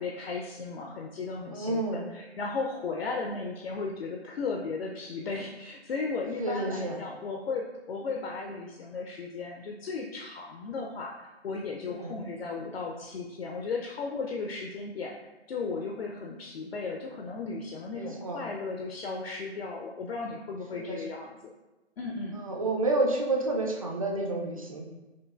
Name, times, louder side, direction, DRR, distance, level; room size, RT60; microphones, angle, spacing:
voice 1, 0.0-15.1 15.5-21.5 22.0-22.4, left 4 dB, 60° left, 1 dB, 0.5 m, -35 dB
voice 2, 1.5-2.1 6.4-7.0 11.9-12.1 17.9-18.4 20.7-21.0 22.3-24.9, right 2 dB, 35° right, 0 dB, 0.4 m, -30 dB
5.8 x 2.4 x 2.3 m, 1.1 s
figure-of-eight pair, 145°, 34 cm